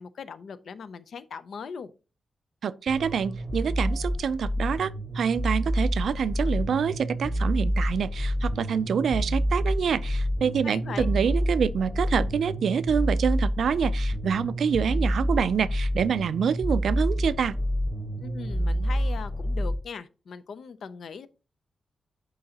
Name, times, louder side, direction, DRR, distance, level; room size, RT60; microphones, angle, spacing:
voice 1, 0.0-1.9 10.6-11.1 18.2-21.3, left 6 dB, 65° left, 0.5 m, -39 dB
voice 2, 2.6-17.6, right 7 dB, 70° right, 0.4 m, -26 dB
sound 1, 2.9-19.7, equal, 20° left, 1.3 m, -28 dB
11.0 x 3.8 x 2.8 m
wide cardioid pair, 160°, 0 cm